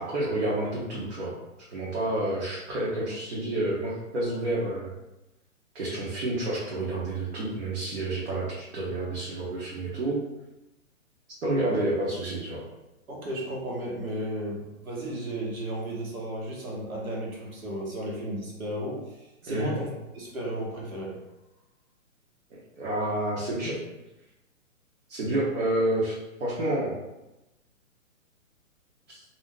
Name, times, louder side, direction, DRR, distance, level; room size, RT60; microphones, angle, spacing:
voice 1, 0.0-1.3 1.7-4.9 5.7-10.2 11.4-12.6 19.5-19.7 22.8-23.7 25.1-26.9 29.1-29.2, right 1 dB, 55° right, -7 dB, 0.8 m, -29 dB
voice 2, 13.1-19.9 20.1-21.2, right 1 dB, 80° right, -3 dB, 1.2 m, -34 dB
2.5 x 2.1 x 3.6 m, 0.98 s
hypercardioid pair, 170°, 42 cm